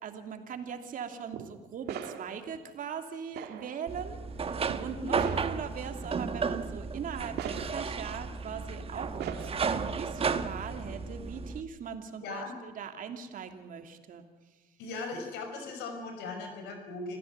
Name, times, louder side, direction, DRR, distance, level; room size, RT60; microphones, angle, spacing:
voice 1, 0.0-5.2 5.4-14.3, right 7 dB, 55° right, 6 dB, 2.9 m, -40 dB
sound 1, 1.3-1.5 1.8-2.6 3.3-3.9 4.7-4.8 5.1-5.9 7.4-8.1 9.2-9.8, right 9 dB, 75° right, 2.2 m, -40 dB
sound 2, 3.9-11.6, right 5 dB, 35° right, 1.3 m, -34 dB
voice 2, 12.2-12.6 14.8-17.2, left 3 dB, 85° left, 5 dB, 5.8 m, -38 dB
27.0 x 15.5 x 9.6 m, 1.2 s
cardioid pair, 110°, 17 cm